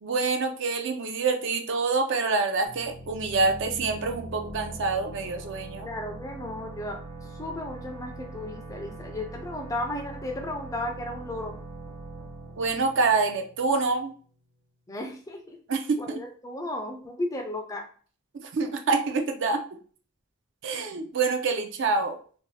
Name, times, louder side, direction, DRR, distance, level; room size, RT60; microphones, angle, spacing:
voice 1, 0.0-5.9 12.6-14.1 15.7-16.2 18.5-19.6 20.6-22.2, right 4 dB, 55° right, 5 dB, 0.4 m, -26 dB
sound 1, 2.7-14.2, right 2 dB, 75° right, 1.0 m, -42 dB
voice 2, 5.8-7.0 7.4-11.6 14.9-15.6 16.0-17.9, left 1 dB, 15° left, 3 dB, 0.3 m, -34 dB
2.6 x 2.2 x 3.2 m, 0.43 s
head